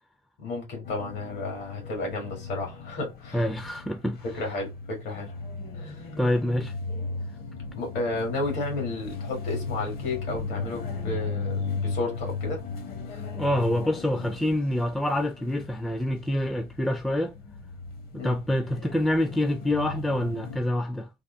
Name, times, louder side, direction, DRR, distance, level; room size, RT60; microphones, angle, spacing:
voice 1, 0.4-3.4 4.3-5.3 5.7-6.1 7.8-12.6 13.1-13.2 18.1-18.4, left 2 dB, 85° left, 2.1 m, -32 dB
sound 1, 0.8-20.6, left 4 dB, 65° left, 1.1 m, -36 dB
voice 2, 3.3-4.2 6.2-6.7 13.3-17.4 18.1-21.1, left 1 dB, ahead, 0.4 m, -26 dB
3.5 x 2.2 x 3.7 m
cardioid pair, 110°, 17 cm